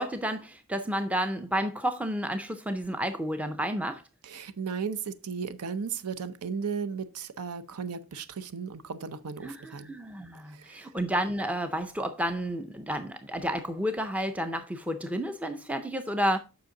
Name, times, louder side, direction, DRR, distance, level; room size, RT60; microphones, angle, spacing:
voice 1, 0.0-4.0 9.4-16.4, equal, 5° right, 0.4 m, -31 dB
voice 2, 4.2-9.9 10.5-10.8, right 6 dB, 85° right, 0.6 m, -35 dB
7.8 x 5.7 x 3.7 m
head